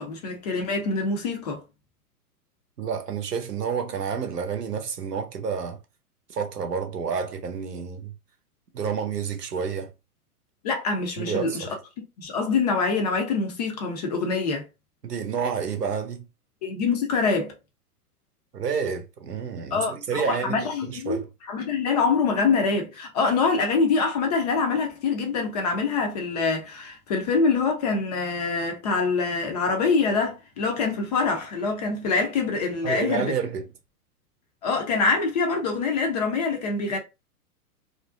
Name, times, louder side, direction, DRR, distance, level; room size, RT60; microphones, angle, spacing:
voice 1, 0.0-1.6 10.6-11.7 12.2-14.7 16.6-17.6 19.7-33.3 34.6-37.0, left 4 dB, 30° left, 0.4 m, -25 dB
voice 2, 2.8-5.8 6.3-8.1 8.7-9.9 11.2-11.7 15.0-16.3 18.5-21.3 32.8-33.7, right 6 dB, 90° right, 0.7 m, -29 dB
2.5 x 2.1 x 2.4 m
figure-of-eight pair, 110°, 46 cm